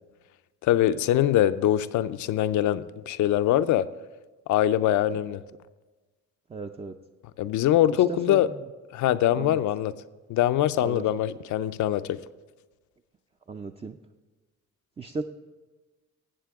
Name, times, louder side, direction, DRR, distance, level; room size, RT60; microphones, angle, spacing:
voice 1, 0.6-3.9 4.5-5.4 7.4-8.5 8.9-9.9 10.3-12.2, left 12 dB, 75° left, 14 dB, 0.5 m, -23 dB
voice 2, 6.5-6.9 8.1-8.4 9.3-9.6 10.8-11.0 13.5-14.0 15.0-15.2, right 4 dB, 20° right, 6 dB, 0.5 m, -35 dB
15.0 x 7.6 x 3.5 m, 1.2 s
cardioid pair, 90°, 30 cm